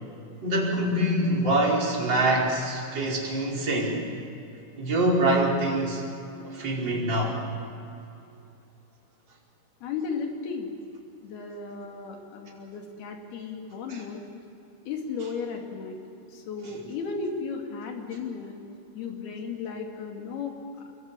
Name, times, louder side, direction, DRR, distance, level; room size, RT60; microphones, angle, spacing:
voice 1, 0.4-4.0 4.8-6.0 6.4-7.4 13.9-14.0, right 1 dB, 25° right, -4 dB, 5.2 m, -25 dB
voice 2, 9.8-10.7 11.2-14.2 14.9-16.0 16.3-18.6 18.9-20.9, left 5 dB, 60° left, 2 dB, 4.4 m, -35 dB
26.0 x 22.0 x 8.9 m, 2.7 s
omnidirectional pair, 5.1 m